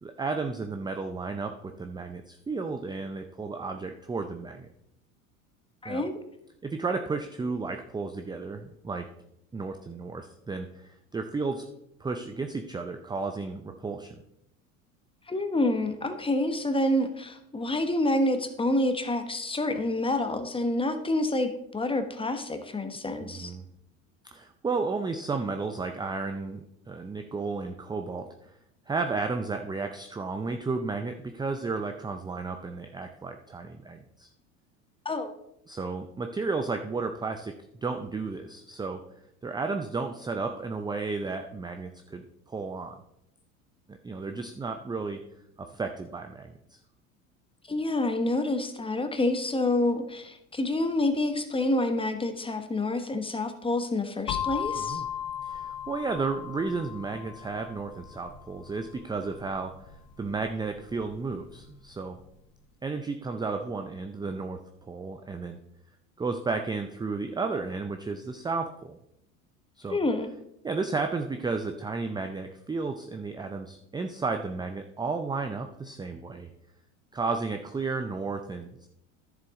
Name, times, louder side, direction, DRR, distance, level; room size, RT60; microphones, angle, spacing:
voice 1, 0.0-4.7 5.9-6.0 6.6-9.1 9.5-11.7 12.0-14.1 23.2-23.6 24.3-28.5 28.9-34.3 35.7-39.0 39.4-43.0 43.9-45.2 45.6-46.5 54.8-55.0 55.4-59.7 60.2-62.2 62.8-64.6 64.9-65.6 66.2-69.0 69.8-70.0 70.6-76.5 77.1-78.9, right 4 dB, 10° right, 6 dB, 0.6 m, -33 dB
voice 2, 5.8-6.1 15.3-23.5 35.0-35.4 47.7-55.0 69.9-70.3, left 1 dB, 15° left, 8 dB, 1.1 m, -28 dB
sound 1, 54.3-62.1, left 9 dB, 50° left, 1.2 m, -38 dB
10.5 x 7.1 x 3.7 m, 0.79 s
hypercardioid pair, 85°, 41 cm